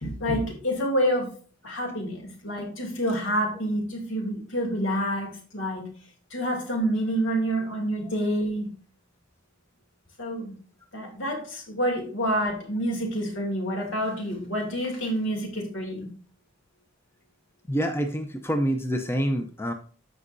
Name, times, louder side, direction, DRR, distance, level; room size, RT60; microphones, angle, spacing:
voice 1, 0.0-1.3 1.6-5.8 6.3-8.7 10.2-10.5 10.9-16.1, equal, 75° left, 1 dB, 2.7 m, -28 dB
voice 2, 17.7-19.7, equal, 10° left, 5 dB, 0.7 m, -26 dB
14.5 x 5.5 x 2.6 m, 0.40 s
head